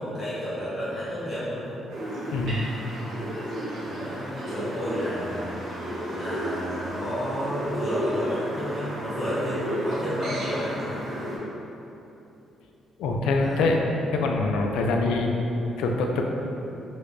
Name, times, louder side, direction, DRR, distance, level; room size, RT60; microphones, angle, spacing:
voice 1, 0.0-1.8 3.8-5.5 6.1-11.0 13.3-13.7, equal, 20° left, -12 dB, 0.9 m, -31 dB
sound 1, 1.9-11.4, equal, 70° right, 1.0 m, -32 dB
voice 2, 2.3-2.6 13.0-13.8 14.1-15.3 15.8-16.2, left 3 dB, 90° left, 2 dB, 0.3 m, -24 dB
3.2 x 3.2 x 2.5 m, 3.0 s
cardioid pair, 90°, 0 cm